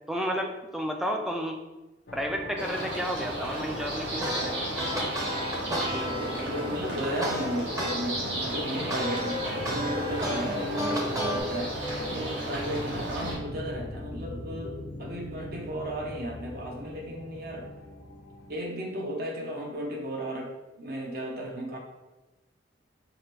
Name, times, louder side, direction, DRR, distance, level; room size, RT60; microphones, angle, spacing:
voice 1, 0.1-1.6 2.1-4.5, equal, ahead, 2 dB, 0.3 m, -31 dB
sound 1, 2.1-18.5, left 1 dB, 70° left, 0.6 m, -40 dB
sound 2, 2.6-13.3, right 1 dB, 70° right, 1.4 m, -34 dB
sound 3, 4.2-8.0 8.3-11.4, equal, 20° right, 0.8 m, -32 dB
voice 2, 5.9-11.8 12.1-17.7 18.5-21.8, equal, 55° right, 0 dB, 0.9 m, -35 dB
4.9 x 2.1 x 4.5 m, 1.1 s
head